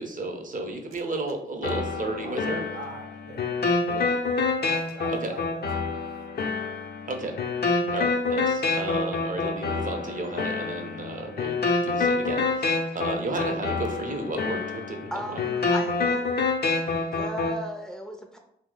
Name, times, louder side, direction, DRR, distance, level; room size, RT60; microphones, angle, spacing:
voice 1, 0.0-2.6 3.9-4.1 5.1-5.4 7.1-7.4 7.9-15.4, right 2 dB, 40° right, 4 dB, 0.7 m, -33 dB
sound 1, 1.6-17.6, left 3 dB, 50° left, 0.6 m, -27 dB
voice 2, 2.2-3.7 4.2-5.9, right 2 dB, 80° right, 0 dB, 0.7 m, -43 dB
voice 3, 15.1-16.4 17.1-18.4, equal, 5° left, 2 dB, 0.5 m, -36 dB
2.7 x 2.0 x 3.8 m, 0.74 s
supercardioid pair, 50°, 21 cm